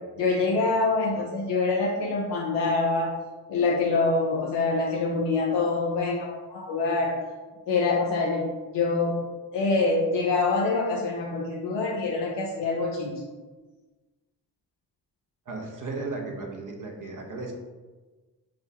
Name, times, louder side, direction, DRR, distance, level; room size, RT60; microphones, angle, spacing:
voice 1, 0.2-3.1 3.5-7.1 7.7-13.2, left 3 dB, 80° left, -2 dB, 0.6 m, -25 dB
voice 2, 15.5-17.5, right 3 dB, 45° right, 1 dB, 1.0 m, -35 dB
6.1 x 2.2 x 2.8 m, 1.3 s
cardioid pair, 50°, 42 cm